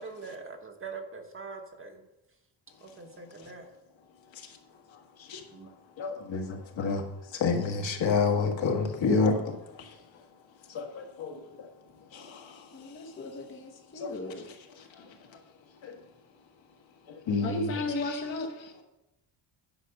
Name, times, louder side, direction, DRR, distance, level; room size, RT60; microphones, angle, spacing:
voice 1, 0.0-2.0 2.8-3.7 5.5-5.7, right 4 dB, 25° right, 1.0 m, -43 dB
voice 2, 6.0-7.0 7.3-10.0 10.7-11.7 12.1-12.7 14.0-14.1 14.4-15.1 15.8-16.0 17.3-18.2, left 4 dB, 70° left, 1.8 m, -30 dB
voice 3, 12.7-14.5 17.4-18.5, left 2 dB, 25° left, 0.8 m, -35 dB
10.0 x 5.2 x 6.6 m
wide cardioid pair, 160°, 47 cm